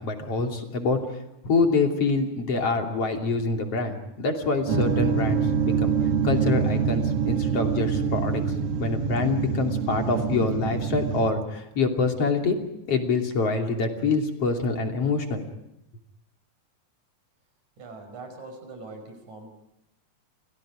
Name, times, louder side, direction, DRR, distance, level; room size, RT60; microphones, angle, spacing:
voice 1, 0.0-5.9 6.2-8.4 8.8-12.6 12.9-15.4, left 3 dB, 50° left, 3 dB, 3.8 m, -26 dB
sound 1, 4.7-11.3, right 6 dB, 55° right, 2.6 m, -25 dB
voice 2, 17.8-19.5, right 3 dB, 70° right, 5 dB, 6.7 m, -42 dB
29.5 x 28.5 x 5.0 m, 0.85 s
omnidirectional pair, 3.6 m